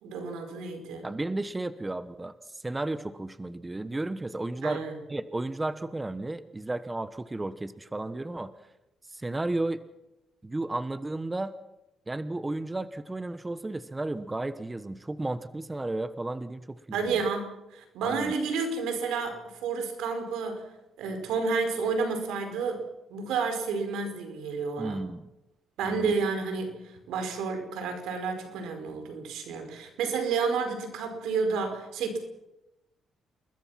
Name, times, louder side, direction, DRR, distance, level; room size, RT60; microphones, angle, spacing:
voice 1, 0.0-1.1 4.6-4.9 16.9-20.7 21.0-22.8 23.1-25.0 25.8-32.2, right 4 dB, 90° right, 6 dB, 5.2 m, -30 dB
voice 2, 1.0-4.8 5.1-8.5 9.1-9.8 10.4-11.5 12.1-17.2 18.0-18.3 24.8-25.3 25.8-26.1, right 2 dB, 15° right, 12 dB, 1.2 m, -33 dB
28.5 x 21.5 x 6.0 m, 0.93 s
cardioid pair, 90°, 0 cm